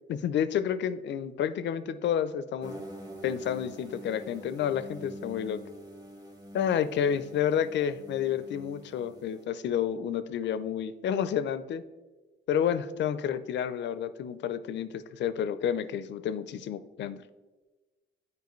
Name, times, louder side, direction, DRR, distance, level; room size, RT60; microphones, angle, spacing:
voice 1, 0.1-2.8 3.2-5.6 6.5-11.8 12.5-17.2, left 9 dB, 65° left, 13 dB, 0.5 m, -30 dB
sound 1, 2.6-9.4, equal, 20° right, 1.2 m, -45 dB
9.4 x 4.8 x 3.1 m, 1.3 s
cardioid pair, 90°, 20 cm